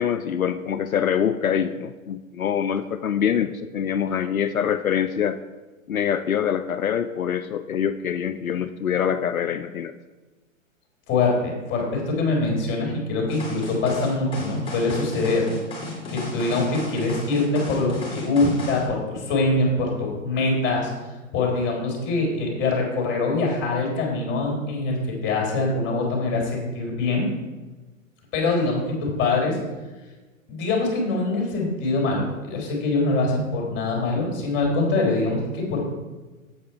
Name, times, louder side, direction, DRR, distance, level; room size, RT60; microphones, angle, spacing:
voice 1, 0.0-5.4 5.9-9.9, left 8 dB, 85° left, 11 dB, 0.5 m, -25 dB
voice 2, 11.1-15.5 16.1-20.9 21.3-27.3 28.3-29.6 30.5-35.8, left 3 dB, 30° left, -1 dB, 3.5 m, -24 dB
sound 1, 13.3-18.8, left 2 dB, 15° left, 2.9 m, -34 dB
8.5 x 8.0 x 4.4 m, 1.2 s
figure-of-eight pair, 110°, 41 cm